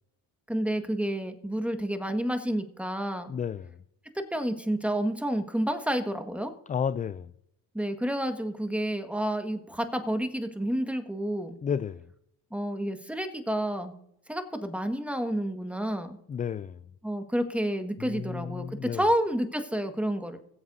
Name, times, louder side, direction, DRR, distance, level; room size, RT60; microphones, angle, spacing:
voice 1, 0.5-3.3 4.1-6.5 7.7-11.6 12.5-13.9 14.3-16.2 17.0-20.4, right 1 dB, 5° right, 1.6 m, -30 dB
voice 2, 3.3-3.8 6.7-7.3 11.6-12.1 16.3-16.8 18.0-19.1, left 7 dB, 20° left, 0.3 m, -32 dB
20.5 x 7.9 x 2.7 m
supercardioid pair, 75°, 44 cm